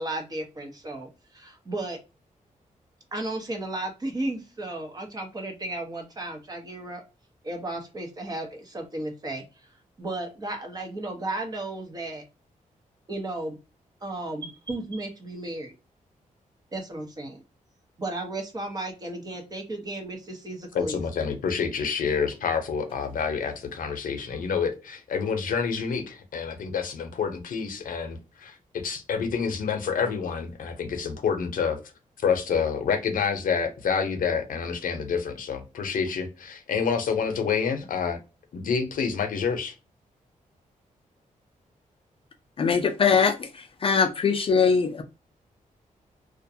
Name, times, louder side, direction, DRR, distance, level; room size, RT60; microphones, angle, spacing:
voice 1, 0.0-2.0 3.1-7.0 7.4-9.4 10.0-12.2 13.1-13.6 14.0-15.7 16.7-17.4 18.0-21.0, right 2 dB, 30° right, 3 dB, 0.7 m, -34 dB
voice 2, 20.7-28.6 28.8-31.8 32.2-38.2 38.5-39.7, left 6 dB, 80° left, 6 dB, 0.6 m, -28 dB
voice 3, 42.6-45.0, left 5 dB, 40° left, 5 dB, 0.4 m, -22 dB
2.4 x 2.2 x 2.7 m, 0.29 s
wide cardioid pair, 130°, 14 cm